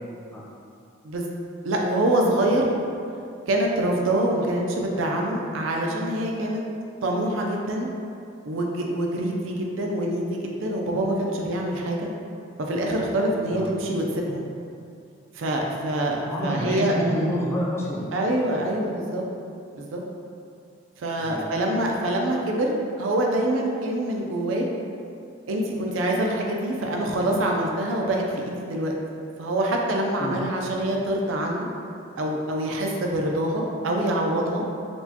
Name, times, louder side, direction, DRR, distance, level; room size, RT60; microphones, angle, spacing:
voice 1, 1.6-2.7 3.5-6.6 7.0-7.9 8.5-12.1 12.6-14.5 15.3-17.0 18.1-19.2 19.8-20.0 21.0-24.7 25.5-29.0 29.4-31.7 32.2-34.7, right 1 dB, 85° right, 0 dB, 0.4 m, -25 dB
voice 2, 16.3-18.1 21.2-21.5 30.2-30.4, equal, 15° left, -6 dB, 0.4 m, -27 dB
4.3 x 2.1 x 2.8 m, 2.5 s
head